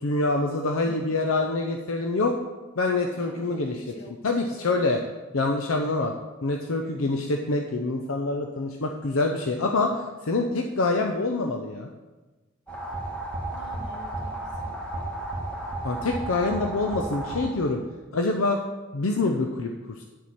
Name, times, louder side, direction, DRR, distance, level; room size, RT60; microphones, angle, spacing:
voice 1, 0.0-2.3 2.8-3.8 4.2-5.0 5.3-6.1 6.4-11.9 15.8-17.8 18.1-18.6 18.9-20.0, left 3 dB, 85° left, 3 dB, 0.7 m, -26 dB
voice 2, 3.1-4.2 4.6-4.8 13.5-14.8, equal, 60° left, 0 dB, 1.9 m, -47 dB
sound 1, 12.7-17.8, right 2 dB, 5° left, 1.7 m, -33 dB
10.0 x 7.5 x 4.2 m, 1.2 s
head